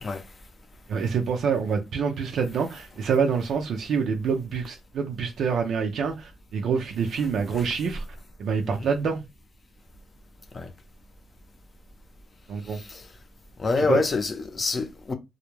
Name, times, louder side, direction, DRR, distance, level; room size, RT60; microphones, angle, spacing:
voice 1, 0.9-8.0 8.4-9.3 12.5-12.8 13.9-14.0, right 6 dB, 65° right, 0.4 m, -26 dB
voice 2, 12.6-13.1 13.6-15.1, left 3 dB, 35° left, 0.5 m, -26 dB
2.3 x 2.0 x 3.0 m
cardioid pair, 90°, 0 cm